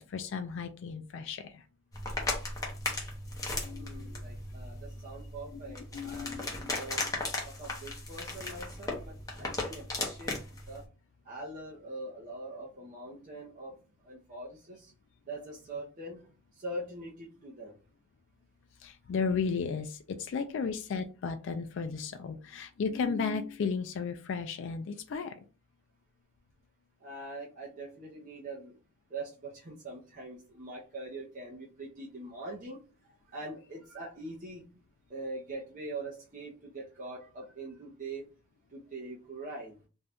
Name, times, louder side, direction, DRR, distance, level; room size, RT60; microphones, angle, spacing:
voice 1, 0.0-1.6 3.6-4.1 5.9-6.8 18.8-25.3, left 5 dB, 60° left, 7 dB, 0.3 m, -34 dB
sound 1, 1.9-10.8, left 2 dB, 15° left, 0.6 m, -37 dB
voice 2, 3.7-7.1 7.4-10.4 10.7-10.9 11.2-13.8 14.0-14.9 15.3-17.8 27.0-28.8 29.1-34.7 35.1-38.3 38.7-39.8, right 2 dB, 40° right, -4 dB, 0.6 m, -43 dB
2.6 x 2.2 x 3.4 m, 0.35 s
head